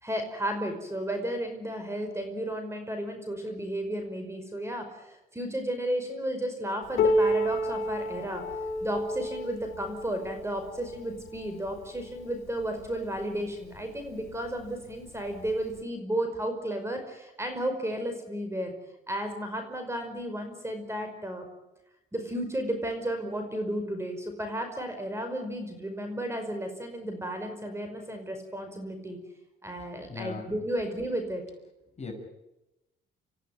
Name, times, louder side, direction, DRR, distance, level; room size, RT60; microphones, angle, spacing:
voice 1, 0.0-8.4 8.8-18.7 19.1-21.5 22.1-29.2 29.6-31.4, right 1 dB, 15° right, 6 dB, 5.3 m, -33 dB
Piano, 7.0-12.3 13.2-13.3 13.8-13.9 14.6-14.7 15.8-15.9, left 1 dB, 85° left, 2.8 m, -30 dB
voice 2, 30.0-30.5 32.0-32.1, left 4 dB, 35° left, 2 dB, 6.9 m, -38 dB
28.0 x 15.0 x 9.2 m, 0.95 s
cardioid pair, 90°, 20 cm